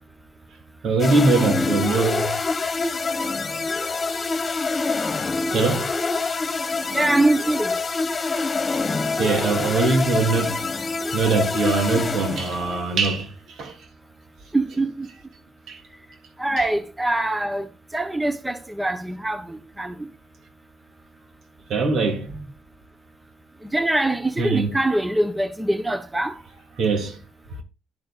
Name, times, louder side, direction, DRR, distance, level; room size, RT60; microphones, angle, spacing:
voice 1, 0.8-2.4 5.5-5.9 9.2-10.6 11.1-13.3 13.6-13.7 15.7-15.8 21.7-22.4 24.4-24.7 26.8-27.2, right 3 dB, 65° right, 3.0 m, -22 dB
sound 1, 1.0-12.9, left 3 dB, 35° left, 1.4 m, -26 dB
voice 2, 6.9-7.7 14.5-15.1 16.4-17.7 17.9-19.9 23.7-26.4, right 1 dB, 10° right, 1.1 m, -23 dB
12.0 x 10.5 x 2.5 m
cardioid pair, 95°, 0 cm